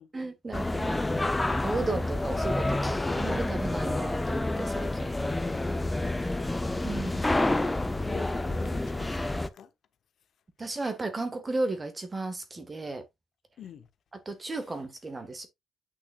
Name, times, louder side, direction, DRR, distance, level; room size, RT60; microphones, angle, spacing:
voice 1, 0.1-5.1 6.8-7.2 10.6-13.0 14.2-15.5, right 2 dB, 20° right, 1.5 m, -34 dB
sound 1, 0.5-9.5, left 2 dB, 10° left, 0.6 m, -29 dB
voice 2, 6.3-6.9 7.6-9.7 13.6-13.9, left 8 dB, 55° left, 0.8 m, -47 dB
8.8 x 6.1 x 2.4 m
cardioid pair, 140°, 0 cm